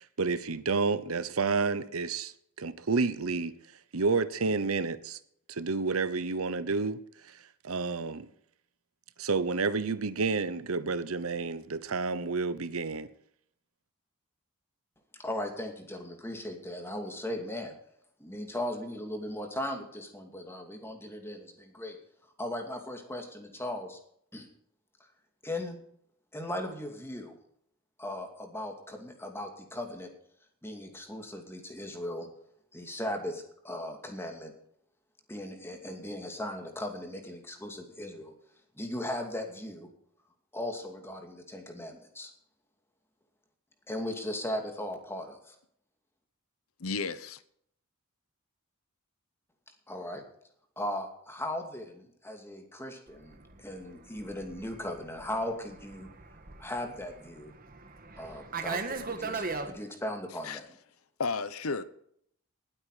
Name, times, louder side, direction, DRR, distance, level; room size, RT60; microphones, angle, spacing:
voice 1, 0.0-2.3 2.6-3.5 3.9-5.2 5.5-7.0 7.3-7.4 7.6-8.3 9.2-13.1, right 4 dB, 80° right, 0.9 m, -30 dB
voice 2, 15.2-17.7 18.2-22.0 22.4-24.0 24.3-24.5 25.4-25.8 26.3-27.3 28.0-30.1 30.6-32.3 32.7-34.5 35.3-38.3 38.8-39.9 40.5-42.3 43.9-45.6 49.9-50.2 50.8-56.1 56.6-57.5 58.2-60.7, left 1 dB, 10° left, 2.5 m, -38 dB
voice 3, 46.8-47.4 60.4-60.6 61.2-61.8, left 4 dB, 80° left, 0.9 m, -32 dB
Fixed-wing aircraft airplane, 53.2-59.7, right 4 dB, 40° right, 1.6 m, -39 dB
19.5 x 8.7 x 5.0 m
head